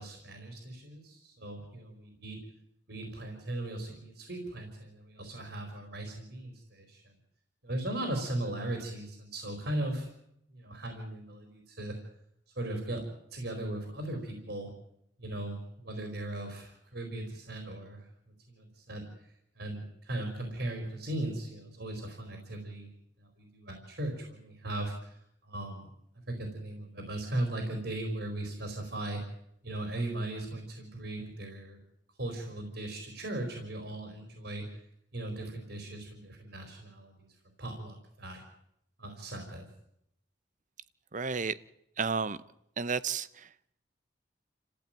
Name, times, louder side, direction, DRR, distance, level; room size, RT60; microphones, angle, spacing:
voice 1, 0.0-2.4 2.9-7.2 7.6-10.1 10.5-12.0 12.6-14.7 15.2-18.1 18.5-22.9 23.2-25.9 26.3-29.2 29.6-31.8 32.2-34.8 35.1-37.3 37.6-38.4 39.0-39.7, right 1 dB, 70° right, 4 dB, 4.6 m, -38 dB
voice 2, 41.1-41.6 42.0-42.4 42.8-43.5, right 5 dB, 45° right, 17 dB, 0.8 m, -32 dB
29.0 x 15.5 x 9.1 m, 0.77 s
head